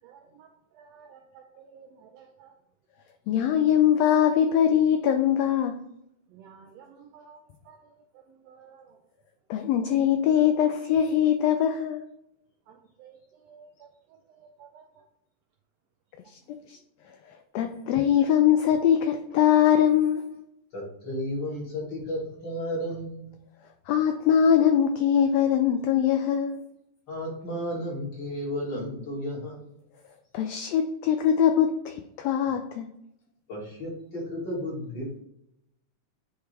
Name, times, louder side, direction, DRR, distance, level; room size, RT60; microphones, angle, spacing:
voice 1, 0.0-2.6 6.3-9.0 12.7-15.1 16.2-16.6, right 6 dB, 90° right, 1.5 m, -53 dB
voice 2, 3.3-5.8 9.5-12.0 16.3-16.8 17.5-20.4 23.9-26.6 30.3-32.9, left 9 dB, 90° left, 1.4 m, -22 dB
voice 3, 20.7-23.3 27.1-29.8 33.5-35.2, equal, 40° left, 2.4 m, -33 dB
9.1 x 3.4 x 3.3 m
omnidirectional pair, 3.5 m